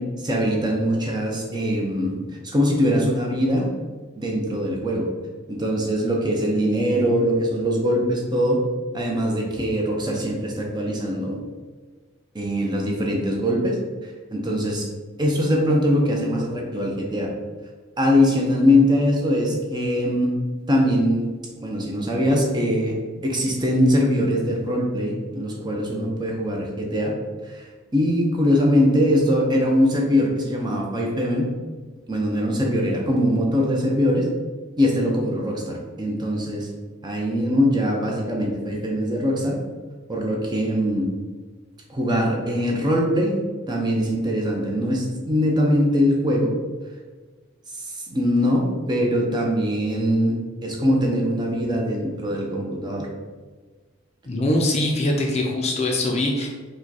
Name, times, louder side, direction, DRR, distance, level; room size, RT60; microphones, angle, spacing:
voice 1, 0.0-2.2 2.4-3.7 4.2-5.1 5.5-8.6 8.9-11.4 12.3-13.8 14.3-14.9 15.2-17.3 18.0-20.4 20.7-21.3 21.6-23.0 23.2-27.1 27.5-27.6 27.9-31.5 32.1-34.3 34.8-36.7 37.0-39.6 40.1-41.1 41.9-43.4 43.7-46.5 47.8-53.1, equal, 20° right, 0 dB, 0.6 m, -22 dB
voice 2, 54.3-56.5, left 1 dB, 30° left, 1 dB, 0.5 m, -22 dB
5.0 x 2.3 x 4.0 m, 1.4 s
head